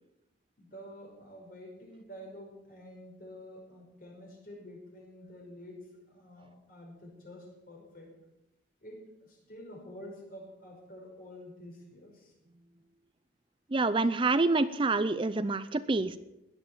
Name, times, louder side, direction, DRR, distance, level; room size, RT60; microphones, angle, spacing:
voice 1, 0.6-8.2 8.8-12.3 16.0-16.1, left 1 dB, 45° left, 1 dB, 5.7 m, -49 dB
voice 2, 13.7-16.2, right 3 dB, 25° right, 13 dB, 0.5 m, -27 dB
17.0 x 11.5 x 7.2 m, 0.90 s
head